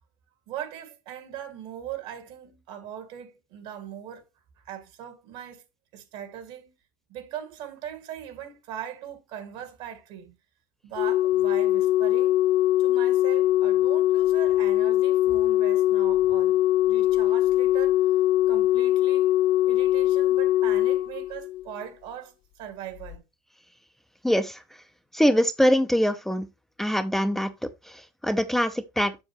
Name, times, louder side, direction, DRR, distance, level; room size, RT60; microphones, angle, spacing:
voice 1, 0.5-4.2 4.6-5.6 5.9-6.7 7.1-10.3 10.8-12.4 12.8-16.6 16.9-18.0 18.5-19.3 19.7-23.2, right 10 dB, 70° right, 2.1 m, -40 dB
Organ, 11.0-21.8 23.0-23.2, left 14 dB, 60° left, 0.5 m, -22 dB
voice 2, 24.2-24.6 25.1-26.5 26.8-29.2, equal, 5° left, 0.6 m, -24 dB
7.0 x 6.9 x 3.0 m
supercardioid pair, 110°, 10 cm